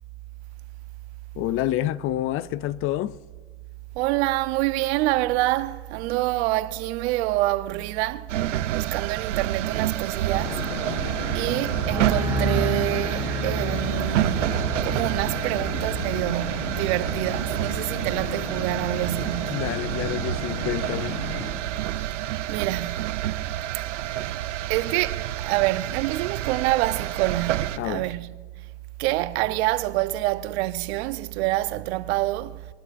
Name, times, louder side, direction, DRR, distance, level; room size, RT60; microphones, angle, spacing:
voice 1, 1.4-3.2 19.5-21.1 27.8-28.1, left 13 dB, 40° left, 0.5 m, -28 dB
voice 2, 4.0-8.3 8.7-10.6 11.3-19.6 22.5-23.1 24.7-28.3 29.0-32.6, right 17 dB, 60° right, 0.8 m, -27 dB
sound 1, 8.3-27.8, right 12 dB, 85° right, 0.6 m, -29 dB
sound 2, 10.3-21.5, left 1 dB, 80° left, 4.0 m, -33 dB
sound 3, 11.9-19.4 19.6-20.2, right 1 dB, 10° right, 2.9 m, -33 dB
21.5 x 12.0 x 2.5 m
hypercardioid pair, 100°, 36 cm